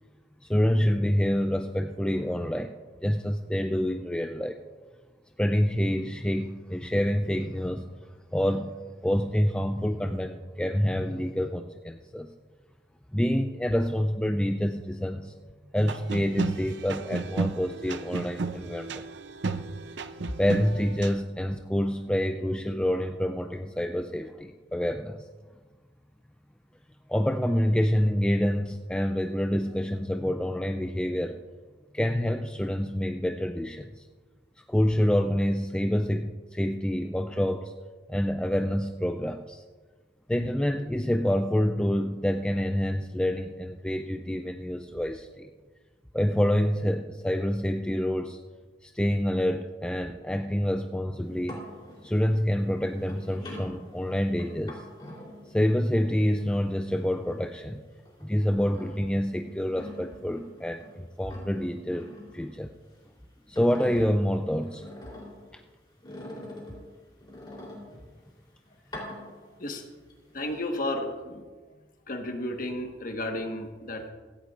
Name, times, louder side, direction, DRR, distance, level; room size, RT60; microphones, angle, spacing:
voice 1, 0.4-4.6 5.4-7.9 8.3-12.3 13.1-15.3 15.7-19.0 20.4-25.3 27.1-31.4 31.9-34.1 34.6-37.7 38.1-39.6 40.3-45.5 46.1-48.4 48.8-51.6 52.0-54.9 55.5-57.8 58.2-62.7 63.5-64.9 65.5-65.6, equal, 5° left, 5 dB, 0.3 m, -27 dB
sound 1, 15.8-21.2, right 3 dB, 65° right, 0.6 m, -34 dB
sound 2, 51.2-57.7 58.0-60.9 61.2-63.0 63.4-65.5 66.0-68.2 68.8-69.7 70.1-70.7, left 1 dB, 25° left, 3.4 m, -45 dB
voice 2, 70.3-71.5 72.1-74.1, left 1 dB, 45° left, 3 dB, 1.4 m, -33 dB
16.5 x 15.5 x 2.5 m, 1.4 s
head